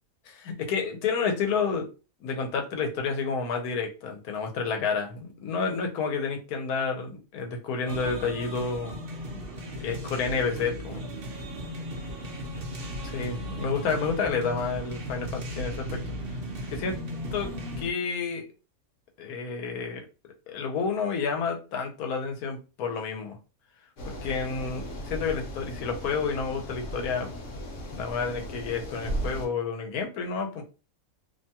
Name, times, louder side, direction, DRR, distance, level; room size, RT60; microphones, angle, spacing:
voice 1, 0.3-1.9 2.2-9.0 9.3-9.4 9.7-11.1 13.0-16.0 16.7-17.0 17.3-17.5 17.8-18.5 19.2-20.0 20.5-23.4 24.2-27.3 27.9-30.6, left 5 dB, 85° left, 3 dB, 1.2 m, -30 dB
sound 1, 7.9-17.9, equal, 50° right, 0.7 m, -36 dB
sound 2, 24.0-29.5, equal, 60° left, 1.2 m, -36 dB
2.8 x 2.2 x 2.7 m, 0.32 s
omnidirectional pair, 1.5 m